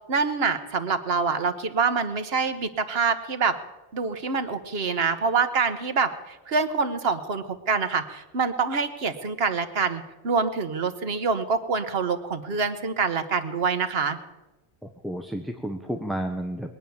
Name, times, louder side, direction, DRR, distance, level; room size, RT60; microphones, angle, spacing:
voice 1, 0.1-3.6 3.9-14.2, right 5 dB, 65° right, 9 dB, 1.3 m, -26 dB
voice 2, 14.8-16.7, right 1 dB, ahead, 4 dB, 0.7 m, -31 dB
21.0 x 9.3 x 7.0 m, 1.1 s
omnidirectional pair, 1.1 m